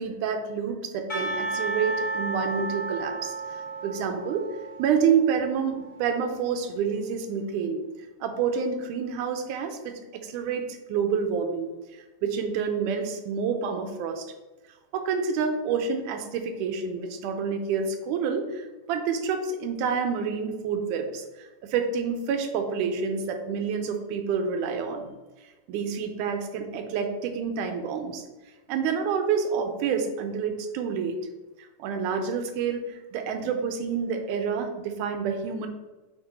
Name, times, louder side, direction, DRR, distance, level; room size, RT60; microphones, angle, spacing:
voice 1, 0.0-3.3 3.8-4.4 4.8-7.8 8.2-11.7 12.2-14.2 14.9-25.1 25.7-28.2 28.7-31.2 31.8-35.7, right 6 dB, 90° right, 6 dB, 2.2 m, -28 dB
Percussion / Church bell, 1.1-6.2, right 3 dB, 65° left, 0.4 m, -33 dB
8.3 x 3.1 x 4.2 m, 1.2 s
omnidirectional pair, 3.6 m